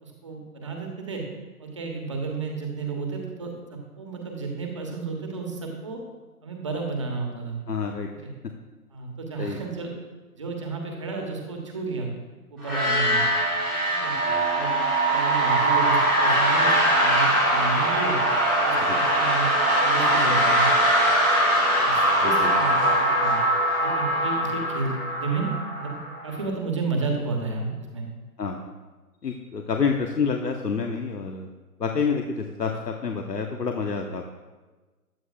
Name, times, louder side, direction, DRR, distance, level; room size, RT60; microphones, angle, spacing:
voice 1, 0.0-1.2 1.6-6.0 6.4-7.6 8.1-8.3 8.9-9.9 10.4-12.1 12.5-13.2 14.0-14.1 14.5-14.7 15.1-18.2 18.6-19.5 19.8-20.7 21.8-23.4 23.8-25.5 25.8-28.1, right 4 dB, 20° right, 1 dB, 1.2 m, -32 dB
voice 2, 7.7-8.1 9.4-9.6 18.8-19.0 22.2-22.6 28.4-28.7 29.2-31.5 31.8-34.3, left 5 dB, 80° left, 3 dB, 1.2 m, -28 dB
sound 1, 12.6-26.3, right 1 dB, ahead, 1.1 m, -22 dB
15.5 x 11.0 x 2.4 m, 1.3 s
figure-of-eight pair, 165°, 48 cm